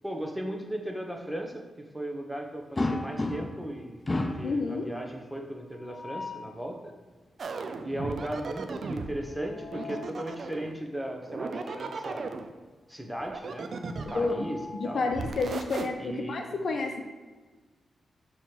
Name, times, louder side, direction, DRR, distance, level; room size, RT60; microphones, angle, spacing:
voice 1, 0.0-6.9 7.8-12.3 12.9-13.7 14.1-14.6 14.8-15.0 16.0-16.4, right 1 dB, ahead, 1 dB, 1.0 m, -37 dB
sound 1, 2.8-3.7 4.1-4.5 5.8-6.5 9.2-10.2 11.6-11.8 12.2-12.3 13.8-15.1, left 2 dB, 30° left, 0.6 m, -34 dB
voice 2, 4.4-4.9 14.1-14.5 14.7-17.0, left 3 dB, 65° left, 4 dB, 0.8 m, -30 dB
sound 2, 7.4-9.2 9.7-10.8 11.2-12.5 13.2-14.4 15.1-15.9, right 4 dB, 60° right, 0.5 m, -36 dB
6.7 x 3.1 x 4.5 m, 1.3 s
cardioid pair, 70°, 0 cm